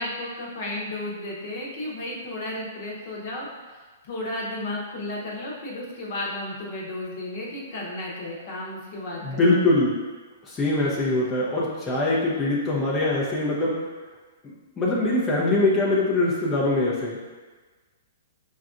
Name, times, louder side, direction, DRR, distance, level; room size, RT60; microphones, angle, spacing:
voice 1, 0.0-3.5 4.0-9.6, left 1 dB, 50° left, -3 dB, 1.0 m, -33 dB
voice 2, 9.2-10.0 10.4-13.8 14.8-17.2, left 2 dB, 20° left, -6 dB, 0.7 m, -23 dB
6.2 x 2.4 x 2.5 m, 1.4 s
hypercardioid pair, 120°, 0 cm